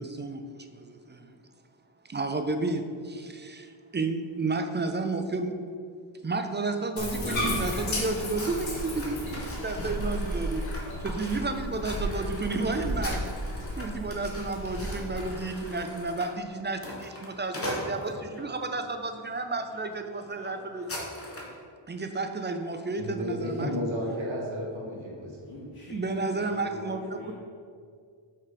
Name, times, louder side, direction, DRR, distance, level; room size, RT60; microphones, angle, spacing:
voice 1, 0.0-1.4 2.1-5.6 6.2-10.6 11.0-13.3 13.8-21.1 21.9-23.7 25.9-27.3, right 3 dB, 25° right, 6 dB, 0.3 m, -32 dB
Bathtub (filling or washing), 7.0-15.3, equal, 65° left, 1.8 m, -33 dB
sound 1, 8.3-18.5 19.1-19.3 19.7-19.8 20.1-21.6, left 1 dB, 25° left, 1.2 m, -41 dB
voice 2, 22.9-25.4, equal, 65° right, -2 dB, 1.6 m, -33 dB
voice 3, 25.4-27.3, left 1 dB, 45° left, -8 dB, 1.5 m, -44 dB
5.9 x 4.6 x 5.0 m, 2.2 s
wide cardioid pair, 140°, 50 cm